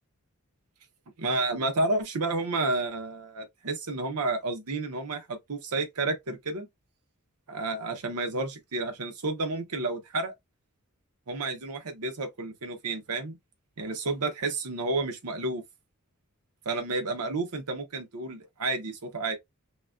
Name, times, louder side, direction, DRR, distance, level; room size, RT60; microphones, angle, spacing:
voice 1, 1.2-6.7 7.5-10.3 11.3-13.4 13.8-15.6 16.7-19.4, right 2 dB, 80° right, 0.8 m, -31 dB
3.9 x 2.1 x 2.4 m
head